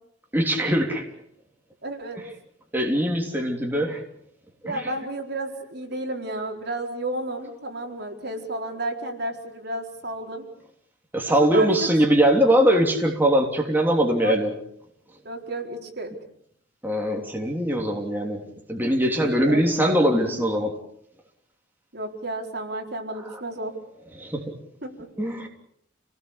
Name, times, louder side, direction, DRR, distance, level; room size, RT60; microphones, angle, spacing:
voice 1, 0.3-1.1 2.7-4.0 4.6-4.8 11.1-14.5 16.8-18.4 18.7-20.7 23.3-23.4 24.2-24.6 25.2-25.5, right 1 dB, 10° right, 1 dB, 3.4 m, -22 dB
voice 2, 1.8-2.2 4.6-10.5 11.3-11.9 12.2-12.3 14.1-14.3 15.2-16.1 19.2-19.6 21.9-23.7 24.8-25.1, right 1 dB, 55° right, 2 dB, 4.3 m, -32 dB
29.0 x 19.0 x 8.3 m, 0.71 s
head